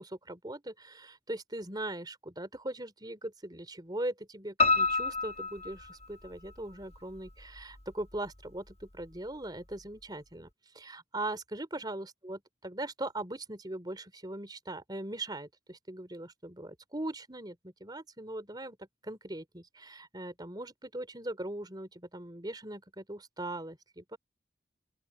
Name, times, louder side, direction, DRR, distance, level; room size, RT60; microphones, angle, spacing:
voice 1, 0.0-10.5 10.7-24.2, right 1 dB, 25° right, 3.7 m, -40 dB
Piano, 4.6-6.5 6.9-7.8 8.1-8.2 8.7-8.8 9.0-9.1, left 3 dB, 35° left, 1.3 m, -29 dB
open air
head